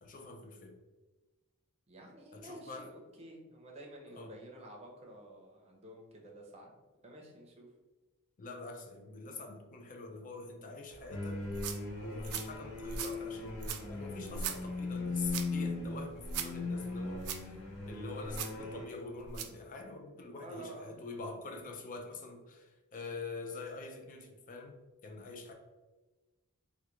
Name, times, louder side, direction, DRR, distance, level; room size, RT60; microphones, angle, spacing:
voice 1, 0.0-0.8 2.3-2.9 4.1-4.4 8.4-11.5 12.0-17.6 17.9-25.5, left 3 dB, 40° left, 4 dB, 0.4 m, -45 dB
voice 2, 1.9-6.7 7.0-7.7 20.4-20.9, right 1 dB, 30° right, 0 dB, 0.6 m, -51 dB
sound 1, 10.9-18.1, left 1 dB, 5° left, 0.8 m, -57 dB
sound 2, 11.1-18.9, left 3 dB, 60° left, 0.8 m, -39 dB
sound 3, 11.4-19.6, right 6 dB, 85° right, 0.4 m, -43 dB
3.4 x 2.3 x 3.0 m, 1.2 s
head